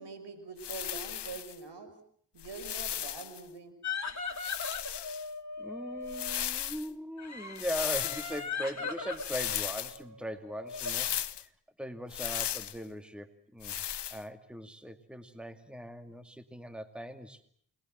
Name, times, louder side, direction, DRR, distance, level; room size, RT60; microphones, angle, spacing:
voice 1, 0.0-1.9 2.3-3.8, right 4 dB, 65° right, 11 dB, 6.1 m, -44 dB
sound 1, 0.6-1.5 2.4-3.4 4.3-5.3 6.0-6.9 7.5-8.4 9.2-10.0 10.7-11.4 12.1-12.8 13.6-14.2, left 10 dB, 65° left, 1.0 m, -36 dB
sound 2, 3.8-6.5 7.2-11.0, left 5 dB, 40° left, 3.5 m, -39 dB
voice 2, 5.6-11.5 11.8-13.8 14.1-17.5, equal, ahead, 8 dB, 2.3 m, -40 dB
29.0 x 21.0 x 7.8 m, 0.62 s
supercardioid pair, 40°, 44 cm